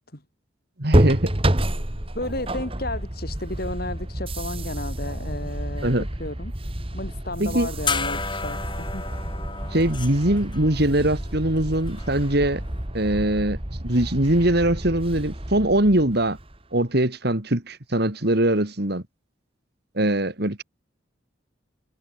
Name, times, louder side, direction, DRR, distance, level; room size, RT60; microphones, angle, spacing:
voice 1, 0.8-1.3 5.8-6.1 7.4-7.7 9.7-12.6 12.9-13.6 13.8-16.4 16.7-19.0 19.9-20.6, right 1 dB, 55° right, 2.7 m, -22 dB
sound 1, 0.9-16.6, right 1 dB, 30° right, 2.0 m, -29 dB
voice 2, 2.1-6.5 6.9-9.0, left 1 dB, 50° left, 4.6 m, -33 dB
sound 2, 7.8-12.7, left 5 dB, 25° left, 6.5 m, -33 dB
head